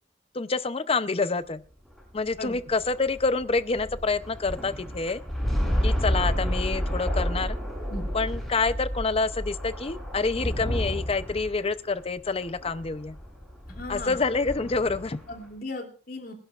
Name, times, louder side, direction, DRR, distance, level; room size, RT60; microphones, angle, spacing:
voice 1, 0.3-1.6 2.1-5.2 5.8-7.6 8.1-13.2 13.9-15.2, left 4 dB, 35° left, 0.6 m, -27 dB
sound 1, 1.8-15.4, equal, ahead, 7.1 m, -31 dB
voice 2, 13.7-14.2 15.3-16.3, left 2 dB, 55° left, 3.0 m, -36 dB
26.5 x 11.0 x 2.4 m
head